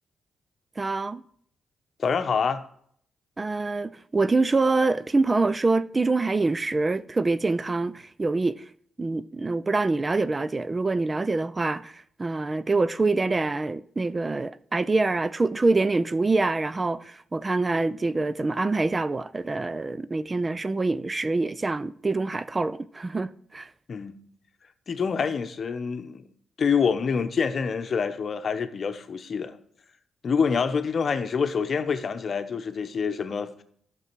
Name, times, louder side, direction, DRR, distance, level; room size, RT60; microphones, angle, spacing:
voice 1, 0.8-1.2 3.4-8.6 9.0-23.7, right 3 dB, 25° right, 0.4 m, -25 dB
voice 2, 2.0-2.6 23.9-24.2 24.9-26.3 26.6-29.6 30.2-33.6, left 6 dB, 50° left, 0.8 m, -26 dB
11.5 x 6.0 x 4.6 m
cardioid pair, 75°, 0 cm